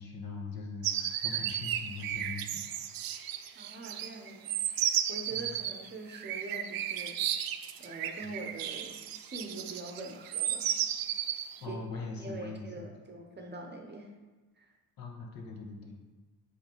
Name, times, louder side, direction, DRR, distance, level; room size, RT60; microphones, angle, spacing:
voice 1, 0.0-2.6 5.3-5.6 8.2-8.3 11.6-12.9 15.0-16.0, left 3 dB, 60° left, 0 dB, 1.6 m, -41 dB
sound 1, 0.8-11.6, right 10 dB, 60° right, 0.6 m, -34 dB
voice 2, 3.5-4.8 5.1-7.4 7.8-10.7 11.7-11.8 12.2-14.1 14.6-14.7, right 2 dB, 25° right, 2 dB, 0.9 m, -44 dB
8.4 x 3.4 x 4.6 m, 1.3 s
cardioid pair, 120°, 40 cm